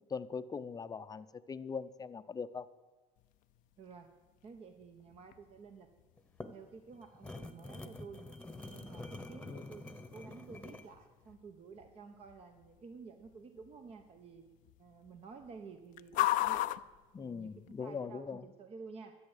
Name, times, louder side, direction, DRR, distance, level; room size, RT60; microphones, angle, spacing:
voice 1, 0.1-2.7 9.5-9.7 17.1-18.4, left 5 dB, 25° left, 12 dB, 0.6 m, -41 dB
sound 1, 3.2-18.0, left 16 dB, 65° left, 0.5 m, -42 dB
voice 2, 3.8-4.1 4.4-5.9 6.5-8.2 8.6-14.4 14.8-16.8 17.2-19.2, right 5 dB, 45° right, 6 dB, 1.1 m, -52 dB
sound 2, 6.2-10.9, left 2 dB, 5° left, 1.1 m, -47 dB
13.5 x 7.8 x 8.1 m, 1.3 s
cardioid pair, 105°, 14 cm